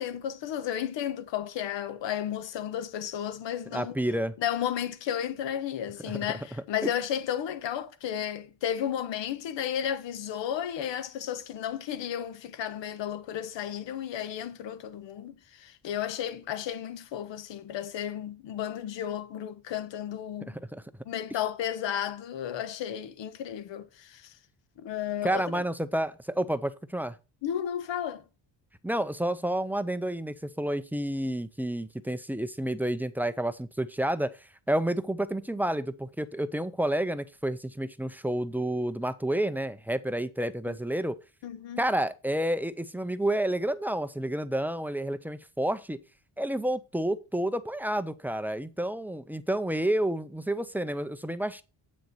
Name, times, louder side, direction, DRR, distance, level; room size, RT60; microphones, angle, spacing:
voice 1, 0.0-4.0 4.4-20.6 21.0-24.4 24.8-25.6 27.4-28.2 40.7-40.8 41.4-41.8, left 10 dB, 75° left, 1.2 m, -33 dB
voice 2, 3.7-4.3 6.1-6.3 20.4-20.8 25.2-27.2 28.8-34.4 34.7-41.2 41.8-46.0 46.4-51.6, right 1 dB, 5° right, 0.4 m, -30 dB
8.4 x 6.6 x 4.5 m
cardioid pair, 140°, 45 cm